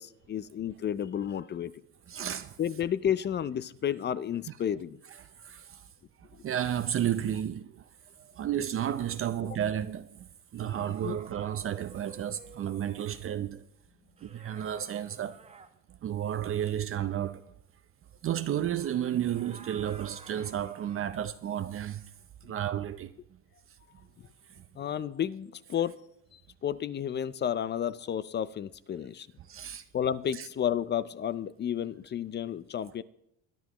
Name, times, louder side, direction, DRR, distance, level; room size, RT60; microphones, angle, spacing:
voice 1, 0.0-1.7 2.6-5.0 9.4-9.6 10.6-11.2 24.2-24.3 24.8-26.0 26.3-29.3 29.9-33.0, left 9 dB, 30° left, 0.5 m, -32 dB
voice 2, 2.1-2.6 5.4-5.8 6.4-7.8 8.4-13.6 14.2-15.4 16.0-17.4 18.2-22.0 22.4-23.1 29.5-29.8 30.3-30.5, right 10 dB, 40° right, 0.6 m, -32 dB
sound 1, 10.7-13.1 14.2-15.7 18.3-21.2, right 4 dB, 20° right, 1.0 m, -53 dB
22.5 x 10.5 x 3.0 m
supercardioid pair, 100°, 35 cm